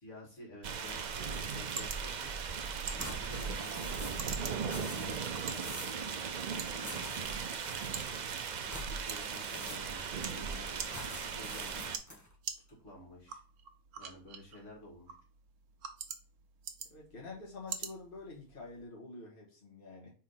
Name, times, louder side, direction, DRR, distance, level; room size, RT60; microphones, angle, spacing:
voice 1, 0.0-2.3 2.9-6.1 8.8-12.0 12.7-13.4 14.0-15.1, left 1 dB, 55° left, 0 dB, 2.4 m, -52 dB
sound 1, 0.6-12.0, right 6 dB, 70° right, 0.4 m, -38 dB
sound 2, 3.0-4.3 4.6-6.0 6.8-8.2 8.6-10.1 10.9-12.3, left 1 dB, 10° left, 1.7 m, -47 dB
sound 3, 8.4-18.8, right 6 dB, 90° right, 1.4 m, -48 dB
voice 2, 16.9-20.1, left 3 dB, 40° left, -4 dB, 1.8 m, -47 dB
4.8 x 4.3 x 5.5 m, 0.39 s
omnidirectional pair, 1.5 m